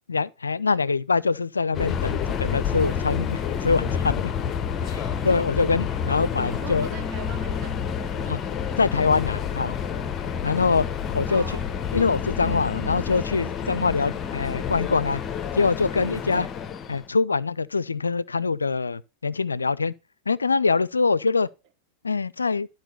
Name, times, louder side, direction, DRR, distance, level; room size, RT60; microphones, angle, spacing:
voice 1, 0.1-4.3 4.8-6.9 8.3-8.4 8.8-9.7 10.4-10.9 11.1-11.4 11.9-15.2 15.5-16.5 16.9-19.9 20.3-21.5 22.0-22.7, left 4 dB, 75° left, 0.4 m, -24 dB
Subway metro underground, 1.7-17.1, left 7 dB, 25° left, 0.9 m, -29 dB
voice 2, 6.4-8.3 11.3-11.7 17.3-17.4, right 11 dB, 40° right, 1.0 m, -42 dB
12.0 x 4.6 x 5.6 m
figure-of-eight pair, 90°, 0 cm